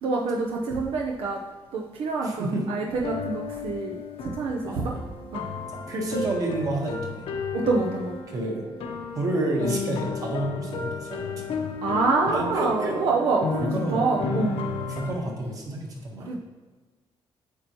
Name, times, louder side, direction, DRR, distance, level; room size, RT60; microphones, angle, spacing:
voice 1, 0.0-1.4 1.7-4.9 5.3-5.4 7.5-8.1 11.8-14.6 16.2-16.3, right 3 dB, 70° right, -1 dB, 0.8 m, -26 dB
voice 2, 2.2-2.7 4.6-5.0 5.9-7.2 8.3-8.6 9.1-11.4 12.3-14.5 14.9-16.4, right 1 dB, 35° right, 0 dB, 1.5 m, -30 dB
sound 1, 2.9-15.1, left 4 dB, 70° left, 1.0 m, -33 dB
8.7 x 6.8 x 3.1 m, 1.4 s
cardioid pair, 160°, 10 cm